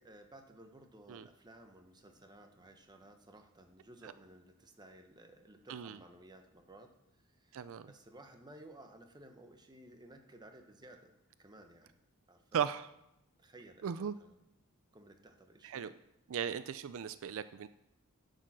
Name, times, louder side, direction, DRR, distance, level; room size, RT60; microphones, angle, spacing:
voice 1, 0.0-7.6 7.9-12.0 12.3-12.6 13.4-14.3 14.9-15.9, right 1 dB, 20° right, 5 dB, 1.0 m, -57 dB
voice 2, 7.5-7.9 12.5-12.9 13.8-14.2 15.6-15.9 16.3-17.7, right 8 dB, 65° right, 13 dB, 0.4 m, -37 dB
10.0 x 6.7 x 6.1 m, 0.86 s
head